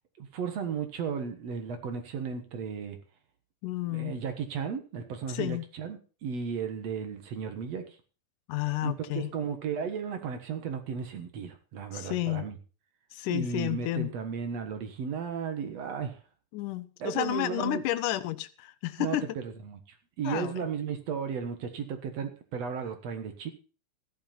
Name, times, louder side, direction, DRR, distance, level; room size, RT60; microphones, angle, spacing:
voice 1, 0.2-3.0 3.9-7.8 8.8-12.6 13.3-16.2 17.0-17.9 19.0-23.5, right 6 dB, 60° right, 2.5 m, -35 dB
voice 2, 3.6-4.2 5.3-5.7 8.5-9.3 11.9-12.5 13.1-14.1 16.5-19.3 20.2-20.5, left 15 dB, 85° left, 2.4 m, -31 dB
14.5 x 10.5 x 4.4 m
omnidirectional pair, 3.6 m